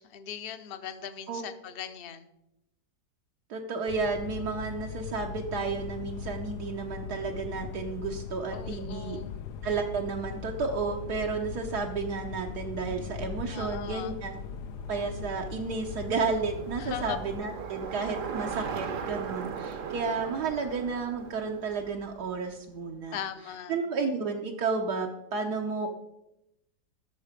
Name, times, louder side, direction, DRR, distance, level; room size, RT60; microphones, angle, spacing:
voice 1, 0.0-2.3 8.5-9.3 13.5-14.2 16.8-17.2 23.1-23.8, left 9 dB, 50° left, 10 dB, 0.7 m, -39 dB
voice 2, 3.5-9.2 9.6-14.4 14.9-23.2 23.7-25.9, right 4 dB, 75° right, 1 dB, 1.4 m, -32 dB
sound 1, 3.9-17.4, left 7 dB, 85° left, 1.3 m, -40 dB
Bicycle, 14.4-22.7, right 6 dB, 60° right, 1.1 m, -39 dB
13.0 x 6.6 x 5.1 m, 0.87 s
omnidirectional pair, 1.8 m